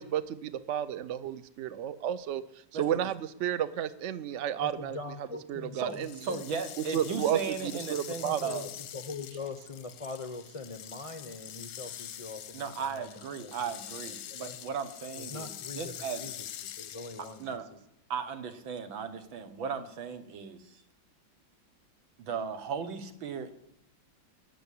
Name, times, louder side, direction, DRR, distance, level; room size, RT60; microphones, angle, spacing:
voice 1, 0.0-2.4 2.7-5.0 5.5-6.1 6.9-8.5, right 10 dB, 60° right, 14 dB, 0.8 m, -32 dB
voice 2, 2.7-3.1 5.7-8.7 12.5-16.3 17.4-17.7 18.1-20.8 22.2-23.5, right 6 dB, 90° right, 8 dB, 2.1 m, -36 dB
voice 3, 4.6-5.8 6.3-6.4 8.2-13.7 14.3-14.6 15.2-17.6, left 3 dB, 50° left, 6 dB, 0.4 m, -42 dB
sound 1, 5.9-17.5, left 10 dB, 65° left, 0.9 m, -45 dB
20.0 x 6.9 x 8.5 m, 0.79 s
omnidirectional pair, 2.1 m